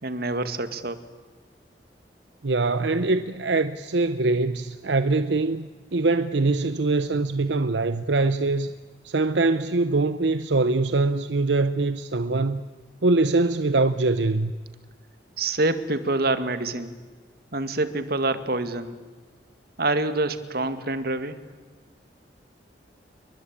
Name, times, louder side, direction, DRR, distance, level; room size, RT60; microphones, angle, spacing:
voice 1, 0.0-1.0 15.4-17.0 17.5-19.0 19.8-21.4, right 2 dB, 60° right, 2.0 m, -26 dB
voice 2, 2.4-8.7 9.0-12.6 13.0-14.5, right 3 dB, 80° right, 0.9 m, -23 dB
29.5 x 22.5 x 8.8 m
head